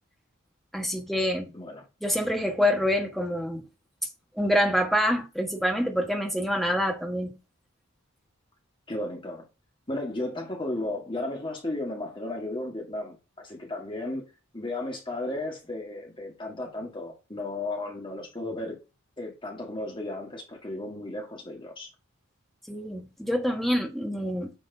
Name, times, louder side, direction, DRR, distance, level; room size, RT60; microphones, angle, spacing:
voice 1, 0.7-1.5 2.0-3.6 4.4-7.4 22.7-24.5, equal, ahead, 1.6 m, -26 dB
voice 2, 1.5-1.9 8.9-9.5 9.9-18.8 19.2-21.9, left 2 dB, 25° left, 1.8 m, -34 dB
9.4 x 6.3 x 2.9 m
head